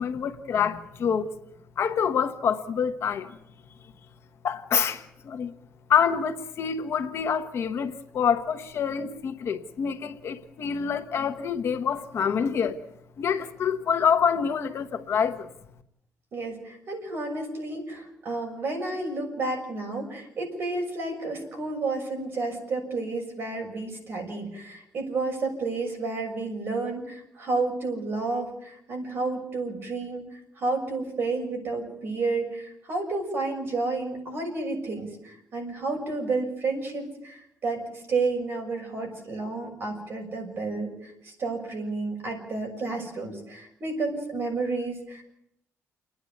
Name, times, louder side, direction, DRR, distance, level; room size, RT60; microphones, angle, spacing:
voice 1, 0.0-1.4 1.8-3.4 4.4-5.5 5.9-12.8 13.2-15.5, left 7 dB, 55° left, 1.2 m, -26 dB
voice 2, 16.3-45.2, right 3 dB, 45° right, 6.7 m, -31 dB
30.0 x 10.0 x 9.5 m
cardioid pair, 160°, 5 cm